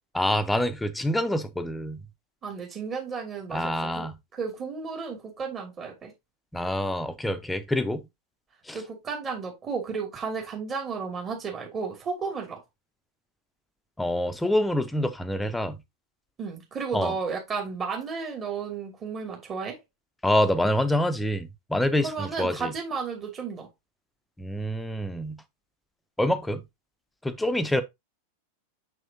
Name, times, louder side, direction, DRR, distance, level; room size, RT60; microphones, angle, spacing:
voice 1, 0.1-2.0 3.5-4.2 6.5-8.0 8.7-8.8 14.0-15.8 16.9-17.1 20.2-22.7 24.4-25.4 26.2-26.6 27.2-27.8, left 1 dB, 5° left, 0.8 m, -26 dB
voice 2, 2.4-4.1 4.3-6.1 8.7-12.6 16.4-19.8 22.0-23.7, right 5 dB, 25° right, 2.6 m, -33 dB
6.3 x 6.3 x 2.8 m
figure-of-eight pair, 90°, 0 cm